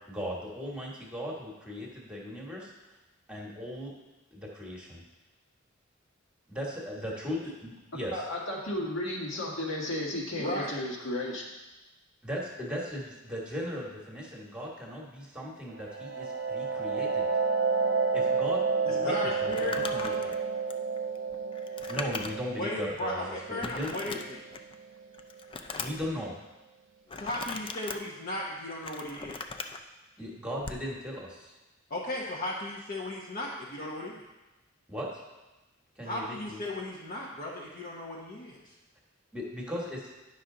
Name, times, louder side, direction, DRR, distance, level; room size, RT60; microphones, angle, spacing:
voice 1, 0.1-2.7 3.3-3.9 4.3-5.0 6.5-8.2 12.2-17.3 18.1-20.3 21.9-24.2 25.8-26.3 30.2-31.5 34.9-35.1 36.0-36.6 39.3-40.1, equal, 5° right, -3 dB, 1.4 m, -37 dB
voice 2, 8.1-11.4, left 1 dB, 65° left, -3 dB, 1.7 m, -33 dB
voice 3, 10.4-10.7 18.8-20.3 22.5-24.4 27.2-29.4 31.9-34.2 36.0-38.7, left 1 dB, 45° left, -5 dB, 1.0 m, -36 dB
sound 1, 15.8-25.2, right 4 dB, 65° right, 0.5 m, -31 dB
Crumpling crinkling, 19.4-22.6 23.0-23.1 23.6-24.7 25.1-26.1 27.1-28.0 28.6-29.8 30.6-30.9, left 4 dB, 25° left, 0.4 m, -39 dB
9.7 x 5.7 x 3.8 m, 1.1 s
head